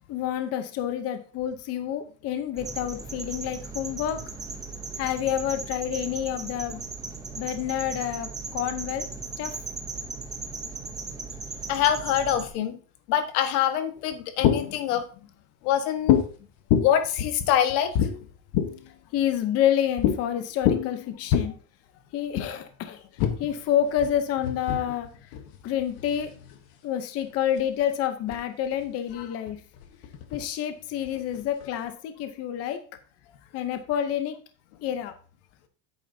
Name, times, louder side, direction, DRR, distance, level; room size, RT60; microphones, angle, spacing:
voice 1, 0.1-4.2 5.0-6.8 7.3-9.1 9.4-9.6 14.9-15.0 19.1-21.5 22.1-23.0 23.4-25.1 25.6-26.3 26.8-29.6 30.3-32.8 33.5-34.4 34.8-35.1, left 10 dB, 35° left, 8 dB, 0.8 m, -28 dB
sound 1, 2.6-12.5, right 4 dB, 10° right, 0.8 m, -37 dB
voice 2, 11.7-12.8 13.1-15.0 15.6-16.2 16.8-18.1, left 10 dB, 85° left, 8 dB, 1.4 m, -25 dB
sound 2, 14.0-14.9 16.1-16.3 16.7-18.9 20.0-20.2 20.5-21.4 22.3-22.5 23.2-26.6 27.3-27.8 28.3-28.4 28.7-30.5 31.1-31.9, left 9 dB, 55° left, 1.3 m, -26 dB
10.0 x 8.7 x 2.7 m, 0.39 s
cardioid pair, 175°, 43 cm